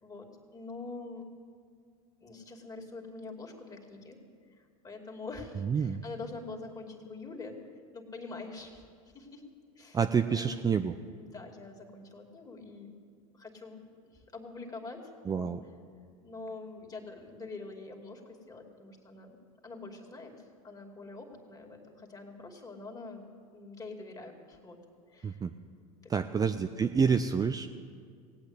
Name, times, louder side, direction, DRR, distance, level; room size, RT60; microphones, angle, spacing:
voice 1, 0.0-1.3 2.2-4.2 4.5-7.6 7.9-8.8 9.1-9.4 9.8-10.0 10.3-10.6 11.2-12.9 13.3-13.8 14.1-15.0 15.3-15.5 16.2-19.4 19.6-23.2 23.5-24.8 25.1-25.4 26.4-26.5, left 3 dB, 20° left, 2 dB, 2.5 m, -45 dB
voice 2, 5.6-6.0 9.9-10.9 15.3-15.6 25.2-25.5 26.1-27.7, right 6 dB, 20° right, 8 dB, 0.5 m, -28 dB
18.0 x 8.6 x 8.1 m, 2.2 s
hypercardioid pair, 90°, 18 cm